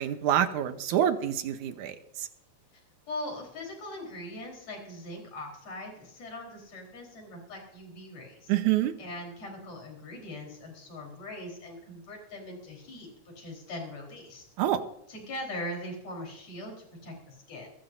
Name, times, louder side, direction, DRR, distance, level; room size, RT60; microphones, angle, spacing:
voice 1, 0.0-2.3 8.5-8.9 14.6-14.8, right 11 dB, 85° right, 9 dB, 2.5 m, -27 dB
voice 2, 3.1-8.5 9.0-14.4 15.1-17.7, left 1 dB, 55° left, 0 dB, 5.4 m, -41 dB
23.0 x 13.0 x 2.7 m, 0.77 s
omnidirectional pair, 3.4 m